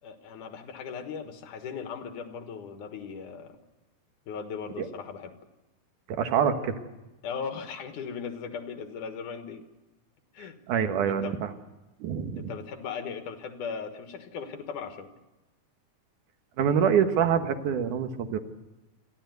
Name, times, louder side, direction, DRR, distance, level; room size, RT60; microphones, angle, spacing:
voice 1, 0.0-3.6 4.3-5.4 7.2-9.6 10.3-10.6 11.0-11.4 12.4-15.1, left 6 dB, 80° left, 7 dB, 3.0 m, -38 dB
voice 2, 6.1-6.8 10.7-11.5 12.0-12.5 16.6-18.4, right 8 dB, 80° right, 7 dB, 2.8 m, -25 dB
28.5 x 11.5 x 9.4 m, 1.0 s
omnidirectional pair, 3.5 m